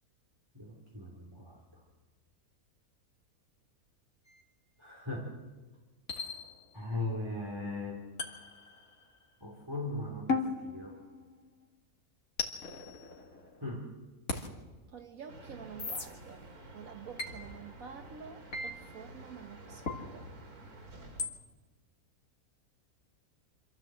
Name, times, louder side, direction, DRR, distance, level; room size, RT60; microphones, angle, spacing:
voice 1, 0.5-1.8 4.8-5.3 6.7-8.0 9.4-11.0 13.6-13.8, left 2 dB, 15° right, -2 dB, 3.2 m, -39 dB
sound 1, 4.3-4.4 6.1-6.9 8.2-9.3 10.3-11.6 12.4-13.7 14.3-14.5 15.8-16.1 17.2-17.4 18.5-18.7 19.9-20.0 21.2-21.4, left 4 dB, 70° left, 2.6 m, -37 dB
voice 2, 14.9-16.5 16.7-20.3, right 6 dB, 70° right, 4 dB, 1.5 m, -48 dB
sound 2, 15.3-21.3, right 2 dB, 90° right, 2.8 m, -50 dB
26.5 x 13.5 x 7.6 m, 1.3 s
omnidirectional pair, 1.5 m